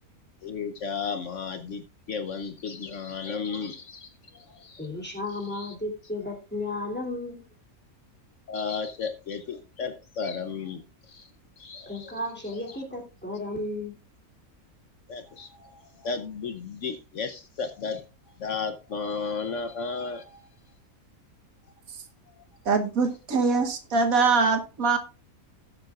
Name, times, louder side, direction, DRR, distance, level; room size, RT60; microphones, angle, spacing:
voice 1, 0.4-4.9 5.4-5.7 8.5-10.8 11.1-11.3 11.6-12.2 12.4-12.8 15.1-18.0 18.4-20.5, left 5 dB, 60° left, 8 dB, 1.1 m, -34 dB
voice 2, 4.8-7.4 11.9-13.9, left 2 dB, 5° left, 1 dB, 2.8 m, -34 dB
voice 3, 22.7-25.0, right 4 dB, 70° right, 6 dB, 1.5 m, -23 dB
17.5 x 7.6 x 2.4 m, 0.30 s
omnidirectional pair, 1.5 m